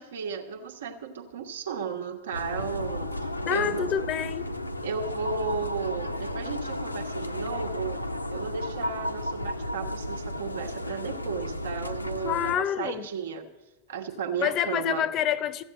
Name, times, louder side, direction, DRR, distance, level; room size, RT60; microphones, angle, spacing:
voice 1, 0.0-3.9 4.8-8.0 8.3-13.5 13.9-15.1, right 6 dB, 65° right, 4 dB, 1.2 m, -34 dB
sound 1, 2.3-12.6, left 1 dB, 85° left, 0.6 m, -33 dB
voice 2, 3.5-4.5 12.2-13.1 14.4-15.6, left 10 dB, 35° left, 17 dB, 0.7 m, -27 dB
14.5 x 8.2 x 7.8 m, 1.1 s
figure-of-eight pair, 90°, 0 cm